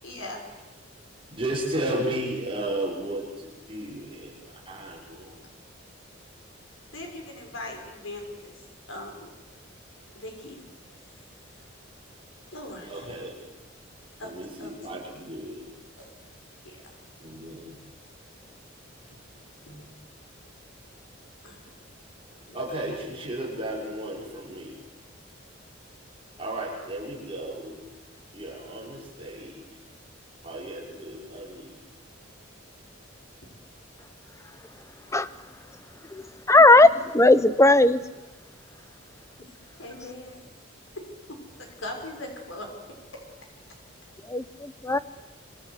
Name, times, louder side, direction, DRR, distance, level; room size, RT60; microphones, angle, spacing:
voice 1, 0.0-0.4 6.9-9.3 10.1-10.6 11.1-11.2 11.5-11.7 12.5-13.1 14.2-14.3 14.6-15.0 16.0-16.1 16.6-17.0 19.1-19.2 19.7-19.8 21.4-21.7 22.3-22.6 23.0-23.2 39.8-40.4 41.6-42.7 43.1-43.2, left 1 dB, 80° left, 2 dB, 6.4 m, -40 dB
voice 2, 1.3-5.4 12.9-13.4 14.2-15.7 17.2-17.8 22.5-24.8 26.4-27.9 28.3-29.8 30.4-31.8, right 1 dB, 25° right, -3 dB, 6.0 m, -34 dB
voice 3, 36.5-38.0 44.3-45.0, left 2 dB, 15° left, 14 dB, 0.9 m, -17 dB
26.5 x 26.0 x 8.4 m, 1.1 s
head